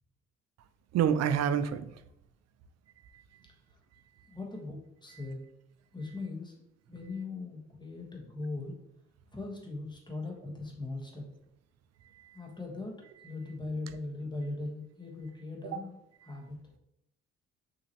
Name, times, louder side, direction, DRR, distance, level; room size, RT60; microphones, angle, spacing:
voice 1, 0.9-1.9 3.1-3.2 5.1-5.2 12.1-12.4 15.6-15.8 16.2-16.3, right 8 dB, 60° right, 12 dB, 0.4 m, -29 dB
voice 2, 4.3-5.4 5.9-6.5 6.9-8.7 9.3-11.2 12.3-16.0 16.3-16.6, left 3 dB, 15° left, -1 dB, 1.3 m, -39 dB
5.6 x 2.9 x 3.0 m, 0.81 s
cardioid pair, 90°, 30 cm